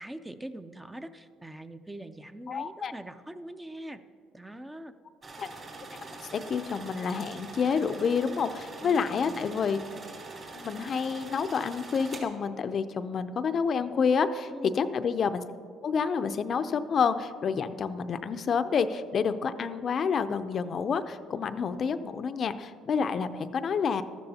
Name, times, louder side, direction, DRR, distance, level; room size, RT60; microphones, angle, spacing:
voice 1, 0.0-4.0 4.3-4.9 8.8-9.5 14.5-14.8, right 1 dB, 10° right, 10 dB, 0.5 m, -42 dB
voice 2, 2.5-2.9 5.4-5.5 6.3-9.8 10.5-15.4 15.8-24.0, left 6 dB, 45° left, 10 dB, 0.5 m, -28 dB
sound 1, 5.2-12.2, right 3 dB, 40° right, 3.3 m, -44 dB
13.5 x 12.5 x 2.8 m, 2.3 s
cardioid pair, 100°, 0 cm